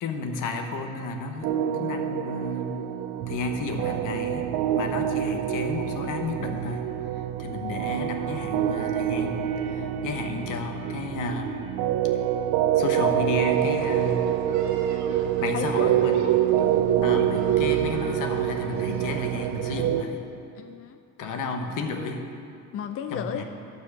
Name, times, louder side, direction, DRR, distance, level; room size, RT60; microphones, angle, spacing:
voice 1, 0.0-2.8 3.3-4.5 4.7-6.8 7.4-11.5 12.8-14.4 15.4-16.2 17.0-20.2 21.2-22.3 23.1-23.4, left 3 dB, 75° left, 4 dB, 1.1 m, -32 dB
sound 1, 1.4-20.0, right 10 dB, 90° right, 0.6 m, -26 dB
voice 2, 7.4-7.7 15.5-15.9 16.6-17.0 20.6-21.0 22.7-23.4, left 8 dB, 45° left, 6 dB, 0.5 m, -35 dB
sound 2, 13.4-19.7, right 3 dB, 60° right, 1.5 m, -44 dB
12.0 x 4.7 x 7.2 m, 2.5 s
cardioid pair, 125°, 31 cm